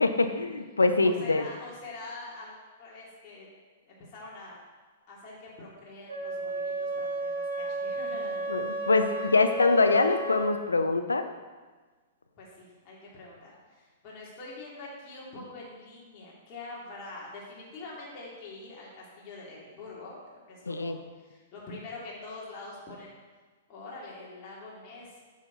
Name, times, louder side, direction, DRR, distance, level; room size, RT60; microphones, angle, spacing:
voice 1, 0.0-1.4 8.5-11.3 20.7-21.0, left 3 dB, 90° left, 8 dB, 0.7 m, -24 dB
voice 2, 1.0-3.5 3.9-4.6 5.1-8.8 12.4-23.1 23.7-25.2, left 2 dB, 40° left, -6 dB, 2.8 m, -45 dB
Wind instrument woodwind instrument, 6.1-10.6, right 2 dB, 90° right, 1.5 m, -33 dB
8.9 x 6.6 x 4.0 m, 1.3 s
hypercardioid pair, 110°, 0 cm